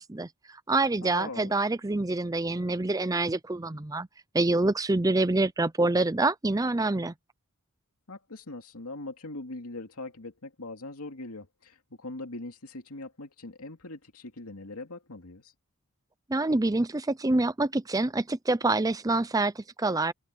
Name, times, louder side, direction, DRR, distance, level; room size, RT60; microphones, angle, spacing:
voice 1, 0.0-4.1 4.3-7.1 16.3-20.1, right 2 dB, 15° right, 0.5 m, -26 dB
voice 2, 1.0-1.5 8.1-15.5, left 2 dB, 85° left, 2.6 m, -41 dB
head